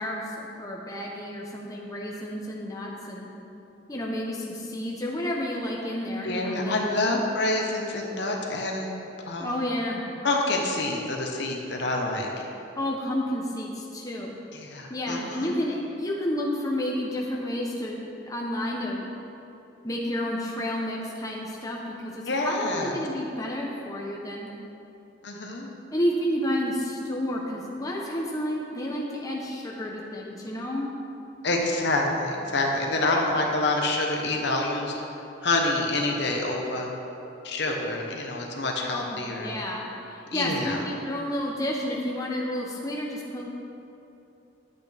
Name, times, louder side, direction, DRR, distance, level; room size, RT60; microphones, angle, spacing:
voice 1, 0.0-3.3 3.9-7.2 9.4-10.0 12.8-14.3 14.9-18.0 18.3-19.1 19.8-24.5 25.9-30.9 38.8-43.5, left 1 dB, 20° left, -2 dB, 0.8 m, -31 dB
voice 2, 6.2-8.9 9.3-9.5 10.2-12.3 14.5-15.5 22.3-22.9 25.2-25.7 31.4-34.9 35.4-36.9 37.4-39.5 40.3-40.8, left 2 dB, 60° left, 0 dB, 1.1 m, -27 dB
11.0 x 8.4 x 3.4 m, 2.9 s
head